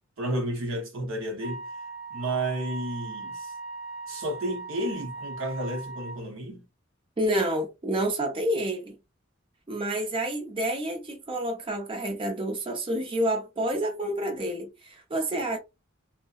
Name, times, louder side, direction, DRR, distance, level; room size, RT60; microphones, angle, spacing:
voice 1, 0.2-1.6 2.1-3.5 4.1-6.6, right 1 dB, 75° right, 0.8 m, -31 dB
Wind instrument woodwind instrument, 1.4-6.2, right 4 dB, ahead, 0.8 m, -39 dB
voice 2, 7.2-8.9 9.7-15.6, right 1 dB, 25° right, 0.5 m, -29 dB
2.7 x 2.0 x 2.3 m
head